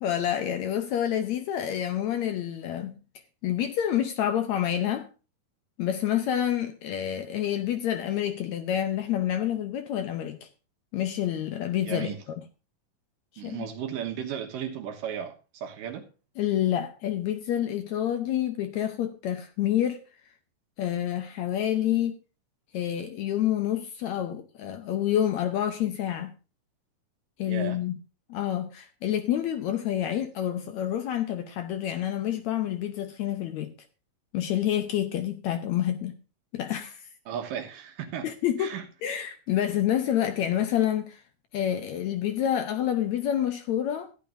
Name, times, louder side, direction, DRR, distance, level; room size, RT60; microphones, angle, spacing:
voice 1, 0.0-3.0 3.4-5.1 5.8-10.5 10.9-12.1 13.4-13.7 16.4-20.0 20.8-22.2 22.7-26.3 27.4-28.0 28.3-33.7 34.3-36.2 36.5-37.1 38.2-38.8 39.0-41.2 41.5-44.1, left 11 dB, 70° left, 1.8 m, -28 dB
voice 2, 11.8-12.2 13.4-16.1 27.5-27.8 37.3-38.3 38.6-38.9, right 8 dB, 80° right, 2.9 m, -35 dB
14.5 x 10.5 x 2.6 m
omnidirectional pair, 3.9 m